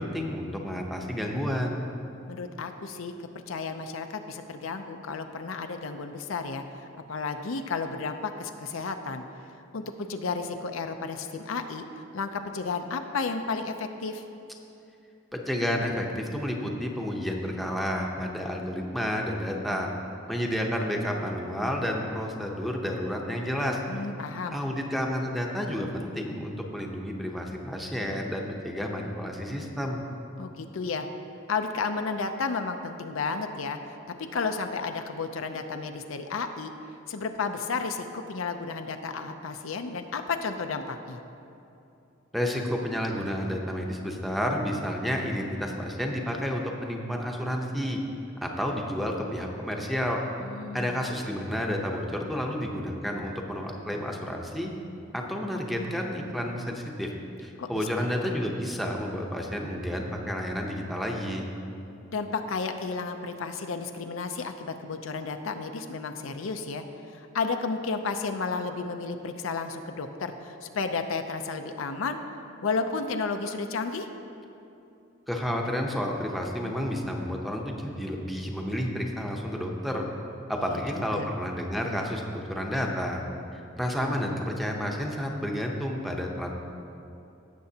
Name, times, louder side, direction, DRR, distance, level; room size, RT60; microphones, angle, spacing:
voice 1, 0.0-1.8 15.3-19.9 20.3-23.8 24.5-30.0 42.3-48.0 48.4-50.2 50.7-54.7 55.1-57.1 57.4-61.5 75.3-80.1 80.5-83.2 83.5-86.5, equal, ahead, 0 dB, 0.8 m, -30 dB
voice 2, 2.3-6.8 7.1-9.2 9.7-11.8 12.1-14.2 23.9-24.6 30.4-31.1 31.5-36.7 37.1-41.2 50.4-51.0 57.6-58.1 62.1-72.2 72.6-74.1 80.7-81.3, left 4 dB, 75° left, 7 dB, 0.5 m, -32 dB
16.5 x 6.9 x 2.8 m, 2.7 s
head